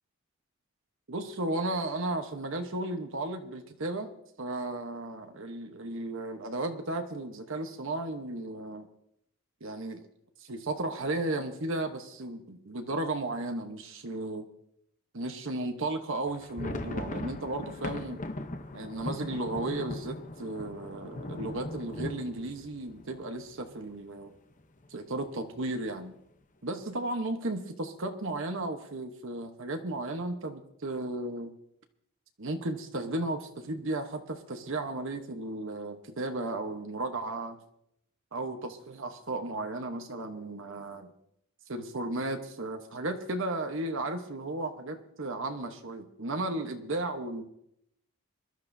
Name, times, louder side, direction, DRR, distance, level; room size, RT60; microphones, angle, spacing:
voice 1, 1.1-4.1 4.4-8.9 9.6-10.1 10.4-14.5 15.1-18.2 18.7-24.3 24.9-26.1 26.6-31.5 32.4-37.6 38.3-41.1 41.7-47.4, right 2 dB, 60° right, 6 dB, 1.1 m, -34 dB
sound 1, 16.2-23.9 24.3-24.4 24.6-24.9 25.4-25.9, left 1 dB, 35° left, 0.8 m, -39 dB
24.0 x 12.5 x 2.7 m, 0.74 s
head